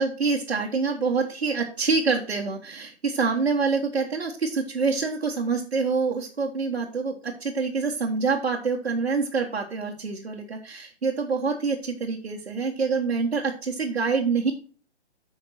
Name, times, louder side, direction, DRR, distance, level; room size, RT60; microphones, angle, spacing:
voice 1, 0.0-14.5, right 4 dB, 75° right, -2 dB, 1.5 m, -26 dB
9.0 x 5.8 x 4.2 m, 0.40 s
figure-of-eight pair, 130°, 33 cm